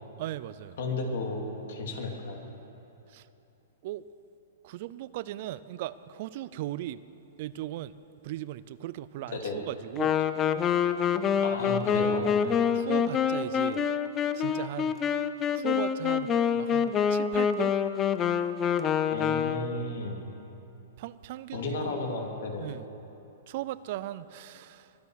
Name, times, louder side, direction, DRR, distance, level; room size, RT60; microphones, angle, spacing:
voice 1, 0.2-0.8 3.1-3.3 3.8-4.1 4.6-7.0 7.4-8.0 8.2-10.2 12.4-13.8 14.3-15.0 15.5-17.7 21.0-22.0 22.6-22.9 23.5-24.9, right 14 dB, 45° right, 16 dB, 0.4 m, -38 dB
voice 2, 0.8-1.4 1.7-2.5 9.3-9.6 11.4-12.4 19.1-20.2 21.5-22.7, left 2 dB, 70° left, 2 dB, 2.7 m, -33 dB
Wind instrument woodwind instrument, 10.0-19.9, left 7 dB, 20° left, 0.5 m, -26 dB
23.0 x 9.5 x 6.4 m, 2.9 s
hypercardioid pair, 150°, 0 cm